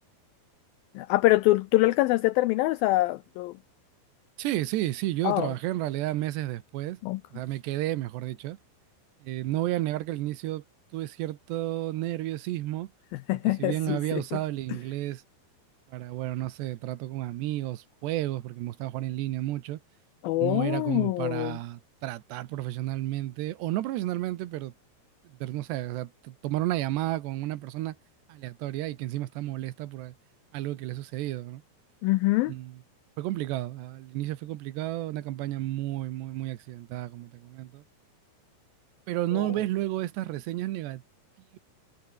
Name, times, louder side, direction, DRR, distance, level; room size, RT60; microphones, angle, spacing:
voice 1, 1.0-3.5 5.2-5.5 7.0-7.2 13.3-14.4 20.2-21.6 32.0-32.5 39.3-39.5, left 18 dB, 85° left, 2.0 m, -24 dB
voice 2, 4.4-7.0 7.3-8.6 9.2-10.6 10.9-12.9 13.3-15.2 15.9-19.8 20.3-24.7 25.3-28.0 28.3-30.1 30.5-31.6 32.5-32.8 33.2-37.8 39.1-41.0 41.5-41.6, right 15 dB, 80° right, 3.3 m, -32 dB
omnidirectional pair, 4.9 m